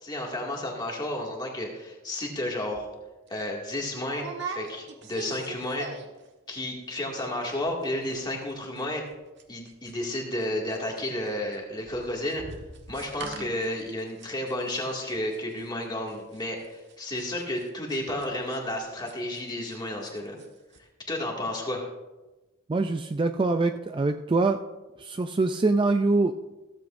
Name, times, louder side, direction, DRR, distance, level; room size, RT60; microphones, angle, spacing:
voice 1, 0.0-2.9 3.3-5.9 6.5-9.0 9.5-12.4 12.9-20.4 21.1-21.9, left 1 dB, 20° left, -1 dB, 2.2 m, -32 dB
sound 1, 2.7-2.9 3.3-3.4 4.1-6.3 6.5-6.9 7.2-7.3 7.5-7.9 8.1-10.4 10.7-19.8 20.0-20.5 20.7-20.8, right 4 dB, 55° right, 1.4 m, -42 dB
voice 2, 22.7-24.6 25.0-26.5, right 3 dB, 25° right, 7 dB, 0.3 m, -24 dB
15.5 x 14.0 x 2.6 m, 1.1 s
head